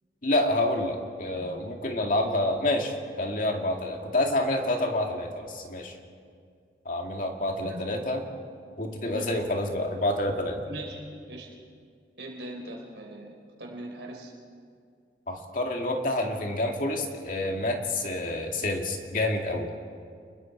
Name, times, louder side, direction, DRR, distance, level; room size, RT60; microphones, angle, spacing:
voice 1, 0.2-5.9 6.9-8.2 8.8-10.6 15.3-19.7, left 1 dB, 50° left, 2 dB, 2.4 m, -28 dB
voice 2, 7.6-8.1 9.0-9.3 10.7-11.5 12.2-14.3, right 1 dB, 80° right, -1 dB, 3.7 m, -41 dB
29.0 x 21.5 x 4.7 m, 2.2 s
head